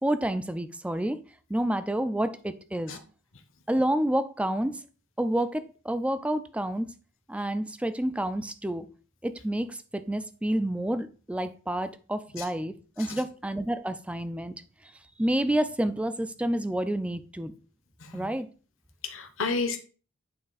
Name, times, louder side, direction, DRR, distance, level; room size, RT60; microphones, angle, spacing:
voice 1, 0.0-1.2 1.5-3.0 3.7-4.8 5.2-6.9 7.3-8.9 9.2-14.6 15.2-17.5 18.1-18.5, right 1 dB, 5° right, 0.3 m, -29 dB
voice 2, 19.0-19.8, left 4 dB, 60° left, 1.0 m, -31 dB
8.7 x 3.4 x 4.0 m
head